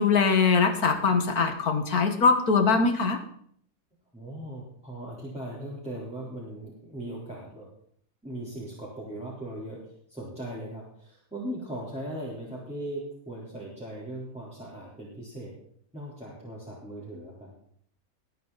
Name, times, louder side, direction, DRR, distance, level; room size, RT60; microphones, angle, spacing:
voice 1, 0.0-3.2, left 4 dB, 80° left, 6 dB, 2.2 m, -22 dB
voice 2, 4.1-7.7 8.2-9.8 10.1-15.5 15.9-17.5, right 1 dB, 5° right, -6 dB, 3.8 m, -38 dB
20.5 x 9.3 x 4.1 m, 0.63 s
omnidirectional pair, 1.6 m